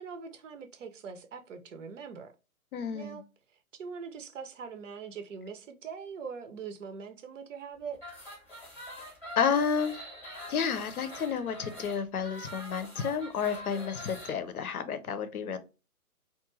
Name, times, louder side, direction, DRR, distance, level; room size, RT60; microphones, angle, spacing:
voice 1, 0.0-2.3 2.9-3.2 3.8-8.0, right 6 dB, 55° right, 0.6 m, -42 dB
voice 2, 2.7-3.2 9.4-10.0 10.5-15.6, left 6 dB, 70° left, 0.6 m, -31 dB
sound 1, 7.9-14.3, left 1 dB, 5° left, 0.8 m, -44 dB
2.4 x 2.2 x 3.0 m
figure-of-eight pair, 130°, 45 cm